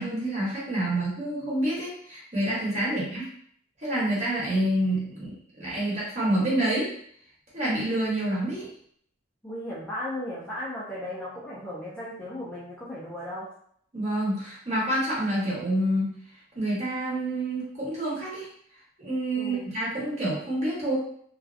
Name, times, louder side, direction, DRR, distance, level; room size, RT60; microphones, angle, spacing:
voice 1, 0.0-3.3 3.8-6.9 7.5-8.7 13.9-16.1 16.5-18.5 19.0-21.0, right 1 dB, 35° right, -6 dB, 1.1 m, -28 dB
voice 2, 9.4-13.5 19.4-19.7, left 1 dB, 5° left, -9 dB, 0.5 m, -36 dB
2.7 x 2.3 x 2.4 m, 0.63 s
head